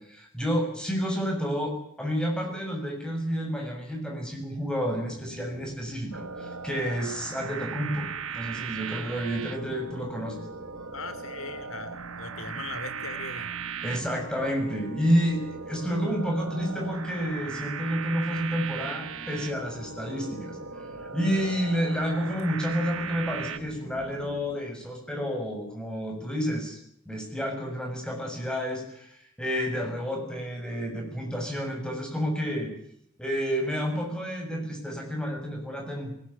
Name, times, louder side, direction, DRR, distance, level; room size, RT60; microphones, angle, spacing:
voice 1, 0.1-8.1 8.3-10.5 12.4-12.5 13.8-20.6 21.1-26.8 27.1-32.7 33.2-36.2, equal, 5° left, 1 dB, 6.9 m, -30 dB
sound 1, 5.1-24.5, equal, 40° left, 7.1 m, -47 dB
sound 2, 6.1-23.6, right 6 dB, 85° right, 1.7 m, -38 dB
voice 2, 10.9-13.5, left 3 dB, 85° left, 11 dB, 3.2 m, -39 dB
20.0 x 18.5 x 10.0 m, 0.71 s
head